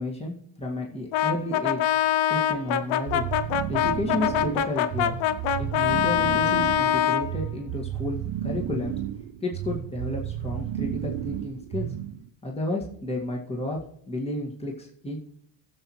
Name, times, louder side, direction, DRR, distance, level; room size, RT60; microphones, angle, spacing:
voice 1, 0.0-1.9 2.3-3.2 3.7-5.2 5.6-9.0 9.4-11.9 12.4-13.8 14.1-15.3, left 1 dB, 10° left, -2 dB, 2.1 m, -32 dB
Brass instrument, 1.1-7.3, left 10 dB, 70° left, 0.8 m, -24 dB
sound 1, 3.1-12.3, right 11 dB, 60° right, 0.8 m, -32 dB
15.5 x 7.4 x 3.2 m, 0.67 s
supercardioid pair, 85°, 49 cm